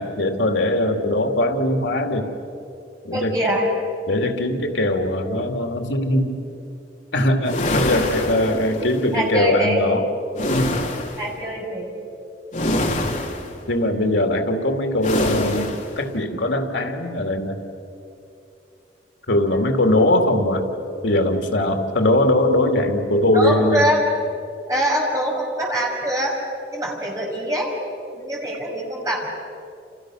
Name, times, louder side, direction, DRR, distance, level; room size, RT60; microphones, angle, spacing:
voice 1, 0.0-2.3 3.0-3.4 4.1-6.4 7.1-10.0 10.5-10.8 13.7-17.6 19.3-20.7 21.0-23.9, left 1 dB, 85° left, 5 dB, 2.5 m, -21 dB
voice 2, 3.1-3.7 9.1-9.8 11.2-11.9 23.3-24.0 24.7-26.4 26.7-27.7 28.1-29.3, equal, 20° right, -2 dB, 5.9 m, -23 dB
sound 1, 7.4-9.0 10.3-11.3 12.5-13.6 15.0-16.0, left 1 dB, 40° left, 2.5 m, -24 dB
29.5 x 29.5 x 6.3 m, 2.7 s
head